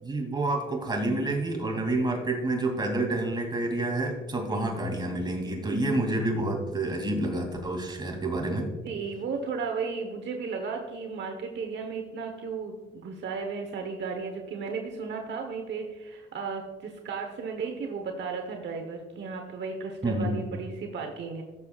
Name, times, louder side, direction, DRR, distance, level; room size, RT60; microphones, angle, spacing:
voice 1, 0.0-8.7 20.0-20.4, right 2 dB, 20° right, 1 dB, 2.6 m, -28 dB
voice 2, 8.8-21.4, right 5 dB, 65° right, 3 dB, 1.1 m, -34 dB
17.5 x 7.0 x 2.4 m, 1.3 s
cardioid pair, 90°, 20 cm